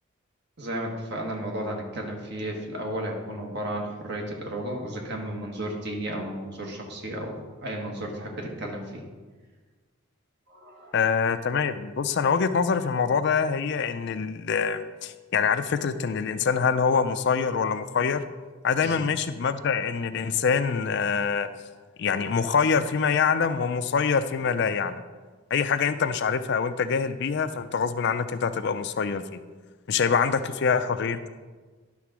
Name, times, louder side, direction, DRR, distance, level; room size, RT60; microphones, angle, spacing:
voice 1, 0.6-9.0 10.5-11.0 18.8-19.0, right 1 dB, 55° right, 0 dB, 1.5 m, -33 dB
voice 2, 10.9-18.2 18.6-21.5 22.0-25.0 25.5-29.2 29.9-31.3, left 6 dB, 55° left, 11 dB, 0.4 m, -25 dB
11.0 x 3.8 x 6.1 m, 1.4 s
head